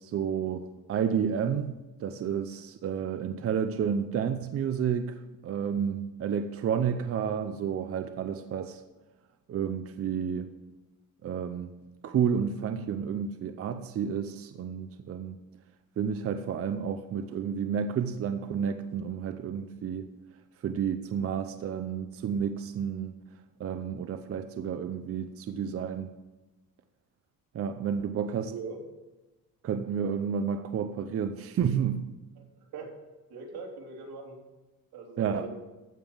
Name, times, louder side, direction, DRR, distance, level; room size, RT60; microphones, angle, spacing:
voice 1, 0.0-1.7 2.0-8.8 9.5-10.5 11.2-11.7 12.0-15.4 16.0-20.1 20.6-23.1 23.6-26.1 27.5-28.5 29.6-32.1 35.2-35.5, right 7 dB, 40° right, 0.6 m, -31 dB
voice 2, 33.3-34.4 34.9-35.5, right 4 dB, 85° right, 3.4 m, -40 dB
15.0 x 5.5 x 7.2 m
cardioid pair, 150°, 36 cm